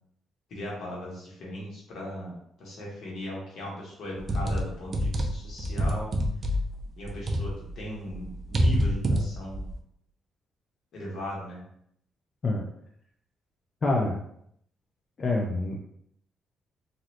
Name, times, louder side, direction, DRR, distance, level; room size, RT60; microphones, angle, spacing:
voice 1, 0.5-6.1 7.0-9.6 10.9-11.6, equal, 70° left, -4 dB, 1.3 m, -38 dB
sound 1, 4.2-7.8 8.1-9.7, equal, 40° right, 0.5 m, -27 dB
voice 2, 13.8-14.2 15.2-15.8, left 2 dB, 40° left, -1 dB, 0.5 m, -26 dB
3.1 x 2.6 x 2.8 m, 0.70 s
cardioid pair, 90°, 0 cm